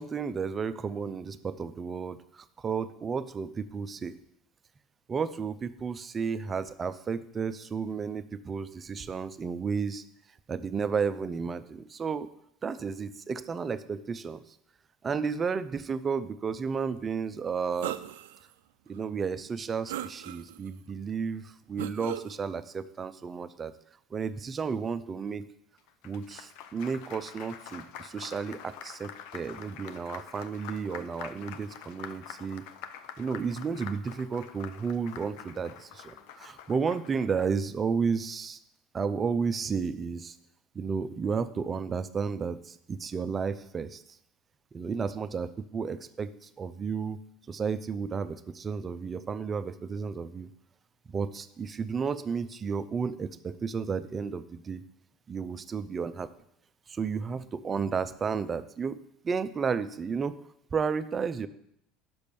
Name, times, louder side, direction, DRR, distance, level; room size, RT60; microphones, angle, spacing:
voice 1, 0.0-4.2 5.1-10.0 10.5-12.3 12.6-14.4 15.0-18.0 18.9-23.7 24.1-25.5 26.0-32.6 33.2-38.6 38.9-40.4 40.7-44.0 44.7-47.2 47.5-50.5 51.1-54.8 55.3-56.3 56.9-59.0 59.2-60.4 60.7-61.5, right 5 dB, 30° right, 12 dB, 0.5 m, -32 dB
sound 1, 17.8-18.4 18.9-19.0 19.9-20.7 21.8-22.3, right 12 dB, 85° right, 0.4 m, -37 dB
Applause, 25.8-37.5, left 9 dB, 70° left, 0.6 m, -46 dB
6.1 x 5.2 x 6.8 m, 0.74 s
supercardioid pair, 95°, 0 cm